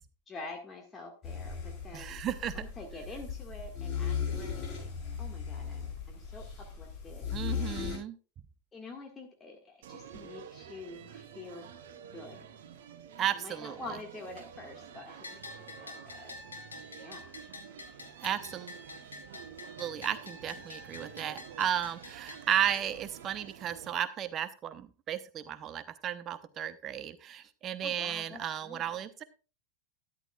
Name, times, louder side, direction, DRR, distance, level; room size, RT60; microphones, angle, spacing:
voice 1, 0.3-2.2 2.5-4.9 5.2-7.9 8.7-11.7 12.1-12.5 13.3-16.3 17.0-17.5 27.8-28.9, left 2 dB, 20° left, 2 dB, 1.8 m, -47 dB
sound 1, 1.2-8.0, left 6 dB, 35° left, 6.6 m, -37 dB
voice 2, 1.9-2.6 7.3-8.2 13.2-13.8 18.2-18.7 19.8-29.2, right 10 dB, 30° right, 14 dB, 0.8 m, -34 dB
sound 2, 9.8-23.9, right 8 dB, 55° right, 1.0 m, -50 dB
Bell, 15.2-22.9, left 3 dB, 75° left, 2.2 m, -48 dB
13.0 x 10.0 x 2.4 m, 0.33 s
figure-of-eight pair, 90°, 0 cm